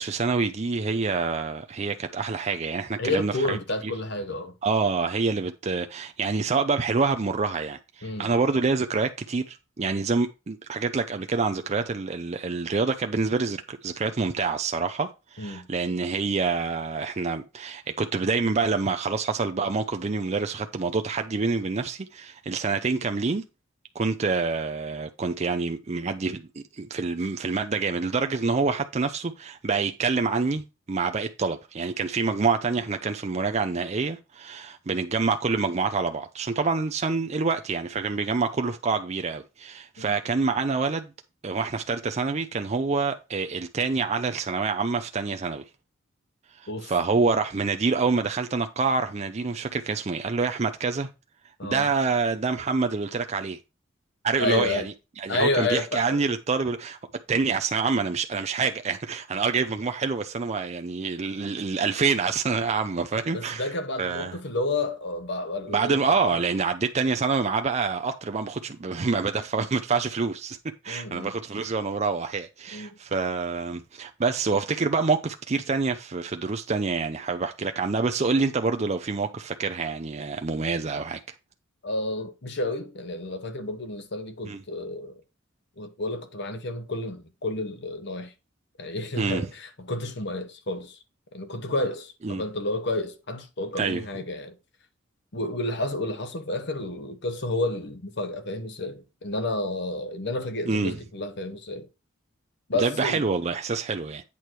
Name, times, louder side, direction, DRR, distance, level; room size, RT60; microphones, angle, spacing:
voice 1, 0.0-3.6 3.8-3.9 4.6-23.4 23.9-26.5 26.8-41.1 41.4-45.6 46.6-51.1 51.6-53.6 54.2-57.0 57.3-63.7 64.0-64.4 65.7-70.6 70.8-81.2 84.5-84.6 89.2-89.5 92.2-92.4 93.8-94.0 100.7-101.0 102.8-104.2, right 4 dB, 35° right, 0.5 m, -27 dB
voice 2, 3.0-4.5 8.0-8.3 15.4-15.7 40.0-40.2 46.7-46.9 51.6-51.9 54.4-54.9 55.3-56.2 63.3-66.0 66.2-66.4 70.9-71.3 72.7-73.0 81.8-85.1 85.8-88.3 88.8-91.0 91.3-94.5 95.3-101.9 102.7-103.2, left 2 dB, 55° left, 1.1 m, -30 dB
8.5 x 4.6 x 4.5 m
head